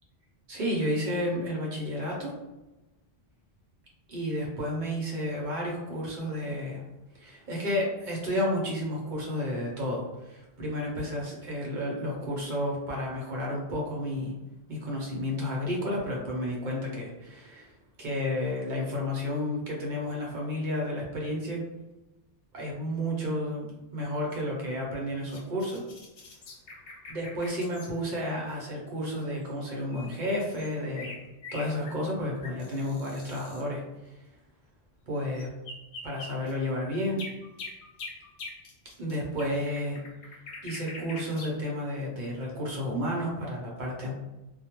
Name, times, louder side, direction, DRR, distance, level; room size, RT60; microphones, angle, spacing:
voice 1, 0.5-2.3 4.1-6.8 7.2-14.3 14.7-17.7 18.0-21.6 22.5-25.8 27.1-31.1 31.5-33.8 35.1-35.5 36.0-37.2 39.0-40.0 40.6-44.1, left 1 dB, 55° right, -3 dB, 0.7 m, -31 dB
sound 1, 24.3-27.9 29.4-29.5 29.9-33.6 35.4-41.5, left 3 dB, 90° left, 0.9 m, -44 dB
2.2 x 2.1 x 2.8 m, 1.0 s
omnidirectional pair, 1.1 m